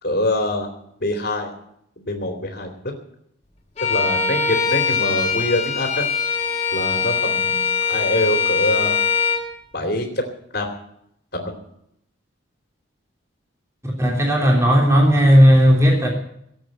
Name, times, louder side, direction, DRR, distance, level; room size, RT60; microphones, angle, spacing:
voice 1, 0.0-0.7 1.0-1.5 2.0-2.7 3.9-6.1 6.7-9.0 9.7-10.2 10.5-10.7 11.3-11.5, left 1 dB, 50° left, 2 dB, 2.9 m, -24 dB
Bowed string instrument, 3.8-9.5, left 6 dB, 30° left, 2.8 m, -22 dB
voice 2, 13.8-16.1, equal, 15° right, -1 dB, 3.4 m, -14 dB
17.5 x 8.1 x 9.0 m, 0.73 s
head